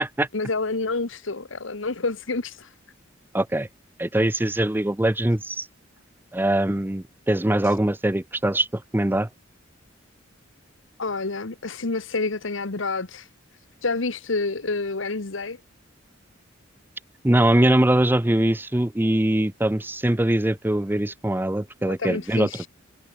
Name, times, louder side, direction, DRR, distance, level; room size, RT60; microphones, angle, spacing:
voice 1, 0.3-2.7 7.6-7.7 11.0-13.3 13.8-15.6 21.9-22.7, left 3 dB, 70° left, 1.3 m, -28 dB
voice 2, 3.3-3.7 4.0-5.7 6.3-9.3 17.2-22.7, right 1 dB, 10° right, 0.7 m, -22 dB
head